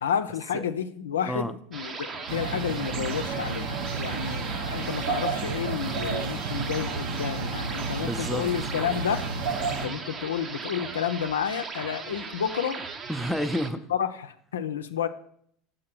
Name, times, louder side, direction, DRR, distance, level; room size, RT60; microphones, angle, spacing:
voice 1, 0.0-9.2 9.7-12.8 13.9-15.1, left 8 dB, 90° left, 8 dB, 0.5 m, -30 dB
sound 1, 1.7-13.7, right 4 dB, 35° right, 0.7 m, -38 dB
sound 2, 2.3-9.9, right 4 dB, 70° right, 0.9 m, -31 dB
voice 2, 8.0-8.5 13.1-13.9, equal, ahead, 7 dB, 0.5 m, -30 dB
6.6 x 3.9 x 5.9 m, 0.64 s
hypercardioid pair, 90°, 0 cm